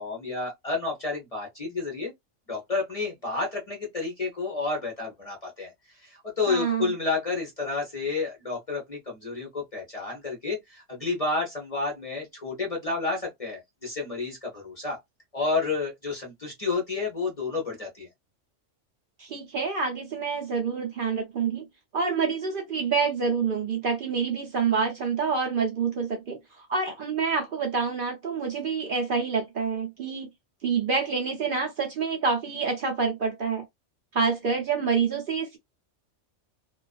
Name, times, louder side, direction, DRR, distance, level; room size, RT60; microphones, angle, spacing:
voice 1, 0.0-2.1 2.5-5.7 6.0-15.0 15.3-18.1, left 3 dB, 40° left, 0.6 m, -30 dB
voice 2, 6.5-6.9 19.2-21.6 21.9-30.3 30.6-33.6 34.1-35.6, right 5 dB, 55° right, 0.6 m, -27 dB
2.3 x 2.3 x 2.3 m
omnidirectional pair, 1.3 m